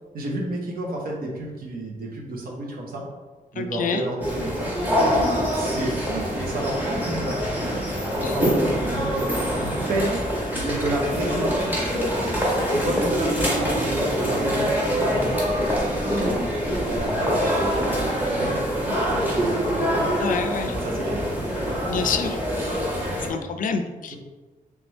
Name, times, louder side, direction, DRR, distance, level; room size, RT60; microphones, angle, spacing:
voice 1, 0.1-3.0 3.5-4.7 5.5-7.5 8.2-9.2 9.6-10.2 10.5-11.7 12.6-15.8 16.1-16.4 16.9-17.9 18.3-19.9 20.6-21.3 24.1-24.2, right 1 dB, 85° right, -2 dB, 0.9 m, -30 dB
voice 2, 3.6-4.0 8.2-8.4 20.2-20.8 21.9-22.4 23.3-24.2, left 5 dB, 65° left, 7 dB, 0.4 m, -27 dB
sound 1, 4.2-23.3, equal, 10° right, 1.0 m, -25 dB
3.3 x 3.2 x 3.1 m, 1.3 s
wide cardioid pair, 145°, 15 cm